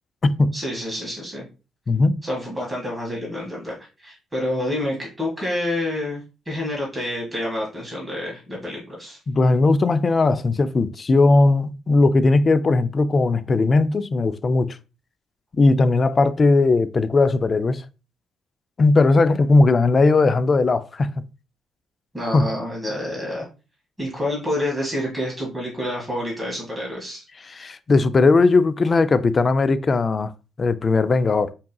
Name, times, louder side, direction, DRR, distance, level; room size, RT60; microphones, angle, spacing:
voice 1, 0.5-1.4 2.2-3.7 4.0-9.2 22.1-23.5 24.0-27.2, left 1 dB, 15° right, 1.7 m, -28 dB
voice 2, 9.3-14.7 15.5-17.8 18.8-21.1 22.3-22.4 27.5-30.3 30.6-31.5, left 3 dB, 35° left, 0.4 m, -18 dB
4.1 x 3.6 x 2.2 m
cardioid pair, 90°, 0 cm